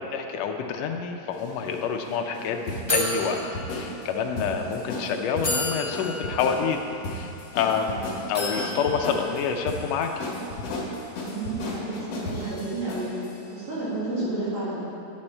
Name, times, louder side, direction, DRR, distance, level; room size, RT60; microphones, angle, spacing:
voice 1, 0.0-3.4 3.7-6.8 7.1-10.3, left 6 dB, 80° left, 4 dB, 1.5 m, -28 dB
sound 1, 1.3-13.3, left 1 dB, 65° left, 2.1 m, -35 dB
sound 2, 1.5-1.6 1.9-2.1 2.9-4.3 4.9-5.0 5.4-7.8 8.3-10.0, left 1 dB, 30° left, 0.4 m, -32 dB
voice 2, 11.3-13.1 13.5-14.8, right 2 dB, 70° right, -10 dB, 3.0 m, -31 dB
9.5 x 5.4 x 4.3 m, 2.8 s
omnidirectional pair, 3.4 m